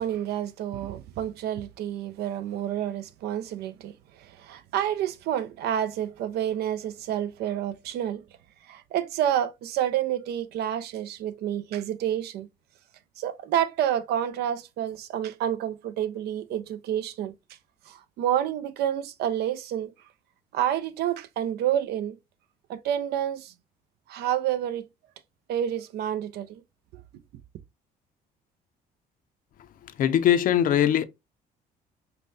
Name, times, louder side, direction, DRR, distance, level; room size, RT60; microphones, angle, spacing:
voice 1, 0.0-8.2 8.7-12.5 13.2-17.3 17.9-19.9 20.5-22.2 22.7-23.5 24.1-24.9 25.5-26.6, right 10 dB, 75° right, 0.6 m, -29 dB
voice 2, 30.0-31.0, left 10 dB, 55° left, 0.5 m, -21 dB
5.3 x 2.2 x 2.7 m
cardioid pair, 110°, 17 cm